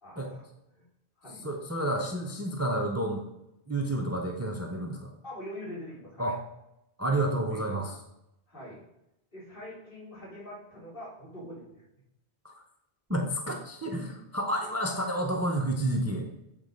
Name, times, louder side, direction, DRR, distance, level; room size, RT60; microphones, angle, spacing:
voice 1, 0.0-0.8 1.2-1.5 5.2-6.3 7.3-7.6 8.5-8.9 9.3-11.8, equal, 55° left, -8 dB, 3.3 m, -44 dB
voice 2, 1.4-3.2 3.7-5.1 6.2-6.4 7.0-7.9 12.4-12.6 13.1-16.3, right 1 dB, 20° right, 2 dB, 0.6 m, -30 dB
8.2 x 3.6 x 5.1 m, 0.87 s
omnidirectional pair, 1.1 m